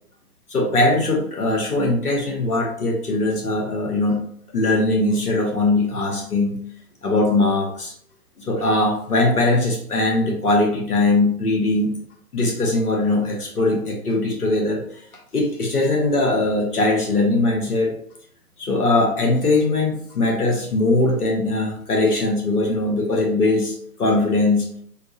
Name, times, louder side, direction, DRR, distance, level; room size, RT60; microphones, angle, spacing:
voice 1, 0.5-4.2 4.5-6.6 7.0-7.9 8.4-11.9 12.3-14.8 15.3-17.9 18.6-24.7, left 2 dB, 70° left, 0 dB, 1.3 m, -20 dB
3.6 x 2.4 x 2.8 m, 0.64 s
figure-of-eight pair, 145°, 47 cm